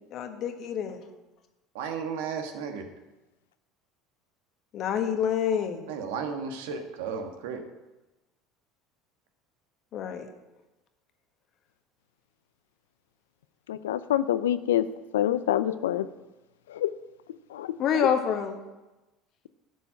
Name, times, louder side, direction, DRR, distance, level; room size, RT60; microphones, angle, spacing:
voice 1, 0.1-1.0 4.7-5.9 9.9-10.3 17.8-18.6, left 8 dB, 55° left, 6 dB, 1.3 m, -27 dB
voice 2, 1.7-2.8 5.9-7.6, right 6 dB, 75° right, 5 dB, 1.3 m, -34 dB
voice 3, 13.7-14.9 15.1-16.1 16.7-16.9 17.5-17.8, left 12 dB, 85° left, 14 dB, 0.4 m, -26 dB
11.0 x 5.4 x 7.5 m, 1.1 s
hypercardioid pair, 80°, 0 cm